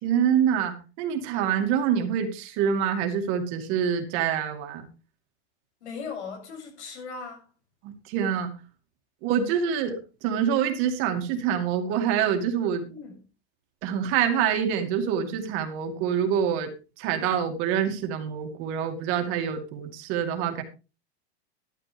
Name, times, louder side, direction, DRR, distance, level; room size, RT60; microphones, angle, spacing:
voice 1, 0.0-4.9 7.8-8.5 9.2-12.9 13.8-20.6, right 8 dB, 40° right, 2.3 m, -26 dB
voice 2, 5.8-7.5 12.9-13.3, left 5 dB, 85° left, 7.9 m, -38 dB
13.0 x 12.5 x 3.5 m
supercardioid pair, 165°, 34 cm